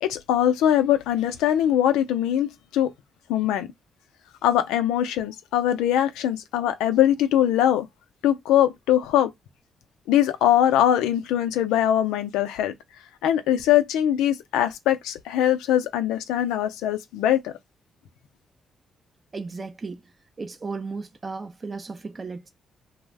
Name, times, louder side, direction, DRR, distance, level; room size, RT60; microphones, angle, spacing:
voice 1, 0.0-2.9 3.3-3.7 4.4-7.9 8.2-9.3 10.1-12.7 13.2-17.5, left 11 dB, 90° left, 0.4 m, -22 dB
voice 2, 19.3-20.0 20.4-22.5, right 4 dB, 40° right, 0.4 m, -35 dB
2.4 x 2.0 x 3.2 m
supercardioid pair, 60°, 0 cm